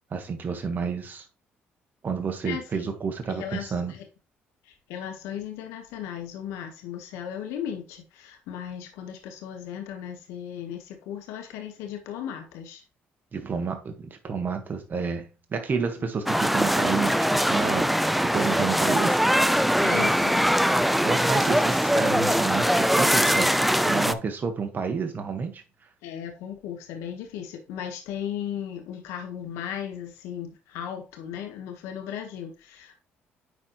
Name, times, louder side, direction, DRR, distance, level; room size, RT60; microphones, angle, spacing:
voice 1, 0.1-1.3 2.0-3.9 13.3-18.1 18.3-19.2 21.0-25.6, right 5 dB, 40° right, 1.4 m, -30 dB
voice 2, 2.4-2.9 3.3-4.0 4.6-12.8 16.0-16.1 19.8-20.5 26.0-33.0, left 9 dB, 85° left, 1.4 m, -36 dB
sound 1, 16.3-24.1, equal, ahead, 0.5 m, -22 dB
9.6 x 4.4 x 3.1 m
supercardioid pair, 65°, 5 cm